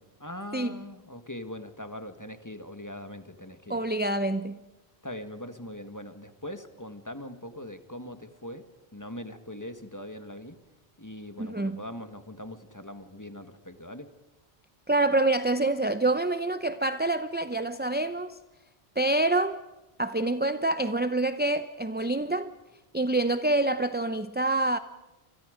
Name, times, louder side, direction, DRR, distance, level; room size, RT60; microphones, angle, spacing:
voice 1, 0.0-3.8 5.0-8.6 8.9-10.6 11.0-14.1, left 1 dB, 15° left, 1.6 m, -41 dB
voice 2, 0.5-0.8 3.7-4.6 11.4-11.8 14.9-18.4 19.0-19.6 20.0-22.5 22.9-24.8, right 2 dB, 10° right, 0.6 m, -26 dB
30.0 x 27.5 x 5.1 m
omnidirectional pair, 1.1 m